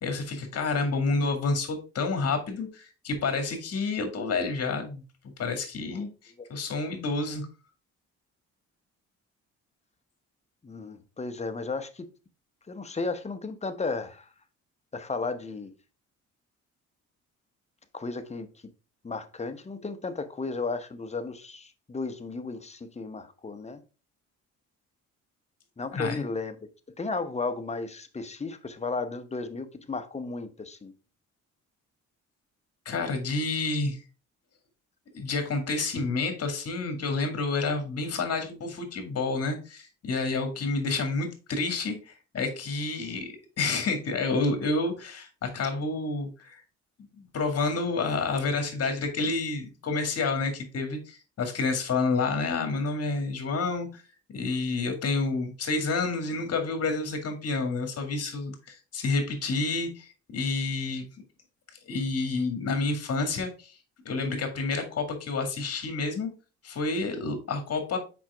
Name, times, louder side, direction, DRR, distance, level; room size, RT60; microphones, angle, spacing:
voice 1, 0.0-5.0 5.4-7.5 25.9-26.2 32.9-34.0 35.1-46.6 47.2-54.0 54.3-61.0 61.8-63.8 64.1-66.3 66.6-68.0, left 3 dB, 55° left, 2.0 m, -29 dB
voice 2, 10.6-12.1 12.7-14.3 14.9-15.7 17.9-18.5 19.0-23.8 25.8-26.7 27.0-30.9, left 3 dB, 20° left, 1.0 m, -34 dB
6.0 x 5.1 x 3.4 m
cardioid pair, 90°, 30 cm